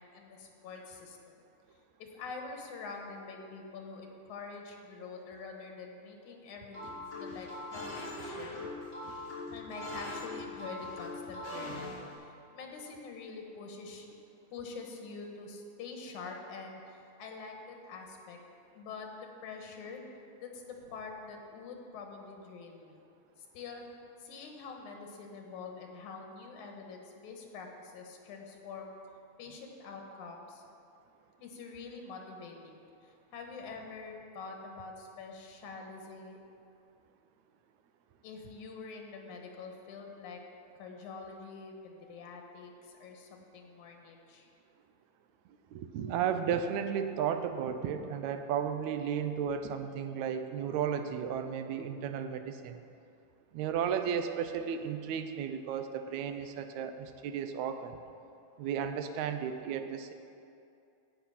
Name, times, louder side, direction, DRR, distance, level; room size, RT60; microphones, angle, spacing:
voice 1, 0.0-1.4 2.0-7.5 7.7-8.6 9.5-14.1 14.5-18.4 18.7-20.0 20.4-23.0 23.5-23.9 24.2-28.9 29.4-30.6 31.4-36.4 38.2-40.4 40.8-44.5, left 4 dB, 90° left, 2 dB, 2.7 m, -46 dB
sound 1, 6.7-12.1, left 2 dB, 35° left, 3.8 m, -41 dB
voice 2, 45.7-52.8 53.5-58.0 58.6-60.1, right 8 dB, 80° right, 8 dB, 2.0 m, -34 dB
16.0 x 5.9 x 5.7 m, 2.6 s
omnidirectional pair, 3.3 m